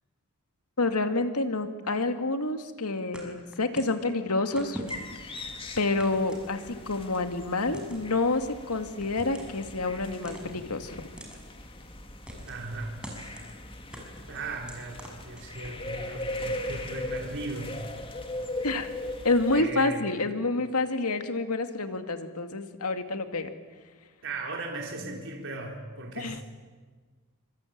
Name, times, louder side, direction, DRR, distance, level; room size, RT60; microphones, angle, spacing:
voice 1, 0.8-4.8 5.2-6.6 6.9-11.1 18.6-18.9 19.2-23.5 26.2-26.4, left 2 dB, 90° left, 7 dB, 2.3 m, -28 dB
sound 1, 3.1-4.0 4.6-5.3 6.0-6.9 7.6-8.1 9.0-9.6 10.2-10.7 11.2-11.4 12.3-12.7 13.0-13.5 13.9-15.8, equal, 5° right, 5.8 m, -43 dB
sound 2, 4.9-19.6, left 1 dB, 25° left, 2.2 m, -39 dB
voice 2, 12.5-13.0 14.3-17.8 19.5-20.1 24.2-26.4, right 3 dB, 60° right, 1 dB, 3.8 m, -37 dB
25.5 x 25.5 x 8.8 m, 1.4 s
head